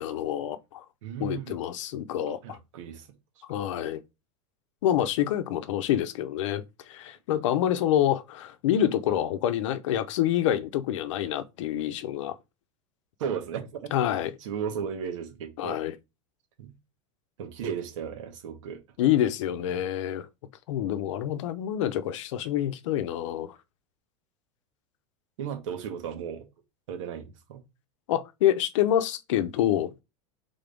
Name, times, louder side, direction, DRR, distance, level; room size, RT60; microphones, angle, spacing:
voice 1, 0.0-0.8 1.2-2.6 3.5-4.0 4.8-12.4 13.9-14.3 15.6-16.0 19.0-20.3 20.7-23.5 28.1-30.0, left 11 dB, 70° left, 0.7 m, -27 dB
voice 2, 1.0-1.6 2.4-3.1 9.1-9.2 13.2-13.9 14.4-15.8 16.6-16.7 17.4-18.8 25.4-26.5 26.9-27.6, right 7 dB, 80° right, 1.4 m, -35 dB
3.8 x 3.7 x 3.5 m
supercardioid pair, 155°, 16 cm